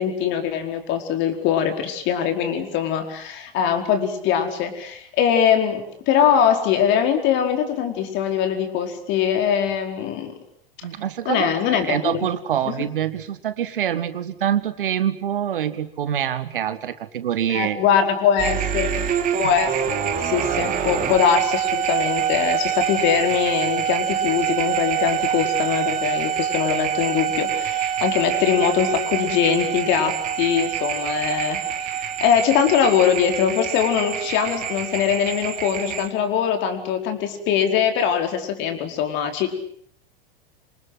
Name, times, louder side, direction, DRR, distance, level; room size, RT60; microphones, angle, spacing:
voice 1, 0.0-10.3 11.2-12.3 12.7-12.8 17.5-19.1 19.4-39.5, left 8 dB, 40° left, 6 dB, 4.7 m, -22 dB
voice 2, 10.8-17.8 19.4-19.5, right 10 dB, 65° right, 13 dB, 1.9 m, -25 dB
sound 1, 18.4-36.1, right 9 dB, 30° right, 3.2 m, -25 dB
27.5 x 26.0 x 7.7 m, 0.65 s
figure-of-eight pair, 90°, 29 cm